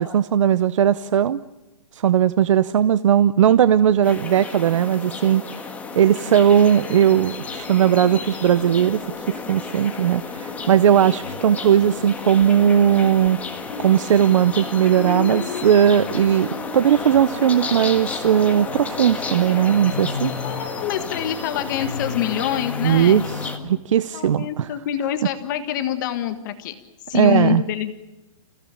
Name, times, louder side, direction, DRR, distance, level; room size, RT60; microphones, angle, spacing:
voice 1, 0.0-1.4 1.9-5.7 5.9-9.0 9.3-13.4 13.8-20.3 22.8-24.7 27.1-27.6, right 9 dB, 60° right, 15 dB, 0.8 m, -18 dB
sound 1, 4.0-23.6, left 4 dB, 10° left, 1.7 m, -33 dB
sound 2, 6.9-23.8, left 5 dB, 85° left, 1.8 m, -36 dB
voice 2, 20.4-23.3 24.1-26.7 27.1-27.9, left 11 dB, 35° left, 8 dB, 1.5 m, -26 dB
28.5 x 16.5 x 8.8 m, 1.1 s
hypercardioid pair, 160°, 18 cm